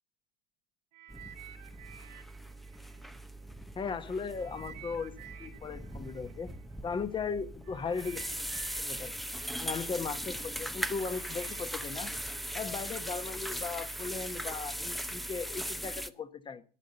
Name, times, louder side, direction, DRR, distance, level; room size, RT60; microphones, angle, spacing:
sound 1, 0.9-3.8 4.3-13.3 14.0-14.2, right 11 dB, 75° right, 1.7 m, -54 dB
sound 2, 1.1-16.1, equal, ahead, 0.7 m, -39 dB
voice 1, 3.7-6.5 6.8-8.5 8.8-9.1 9.6-12.1 12.5-16.6, left 5 dB, 25° left, 1.2 m, -37 dB
12.0 x 8.4 x 6.7 m
hypercardioid pair, 95°, 21 cm